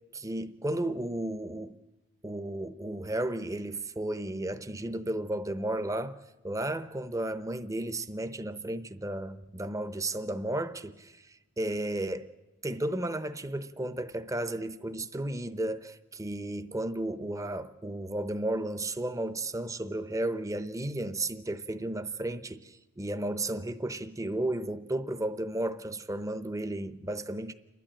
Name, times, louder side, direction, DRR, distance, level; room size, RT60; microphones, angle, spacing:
voice 1, 0.1-1.8 2.2-12.3 12.6-27.5, right 1 dB, 15° right, 0.7 m, -33 dB
29.0 x 12.0 x 8.8 m
head